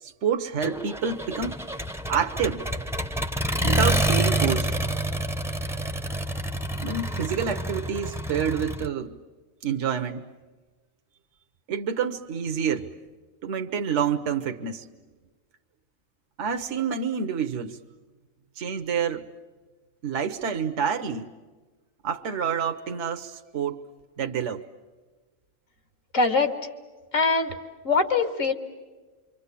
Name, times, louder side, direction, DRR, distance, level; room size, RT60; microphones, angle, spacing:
voice 1, 0.0-1.6 2.1-2.7 3.6-4.8 6.8-9.2 9.6-10.3 11.7-12.9 13.4-14.9 16.4-17.8 18.6-19.2 20.0-21.3 22.0-23.8 24.2-24.6, right 7 dB, 65° right, 1.3 m, -28 dB
Accelerating revving vroom, 0.6-8.9, right 1 dB, 5° right, 0.7 m, -28 dB
voice 2, 26.1-26.6 27.1-27.5 27.8-28.5, left 4 dB, 75° left, 2.4 m, -22 dB
26.0 x 25.0 x 8.4 m
omnidirectional pair, 1.4 m